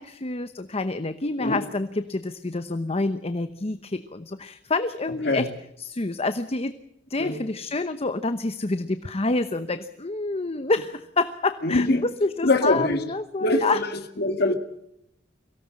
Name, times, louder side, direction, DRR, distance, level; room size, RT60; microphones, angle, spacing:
voice 1, 0.0-5.5 5.8-6.7 7.1-13.8, left 2 dB, 35° left, 11 dB, 0.9 m, -28 dB
voice 2, 11.6-12.1 12.4-13.0 13.4-14.5, left 2 dB, 60° left, 6 dB, 2.0 m, -23 dB
23.5 x 17.5 x 7.7 m, 0.79 s
head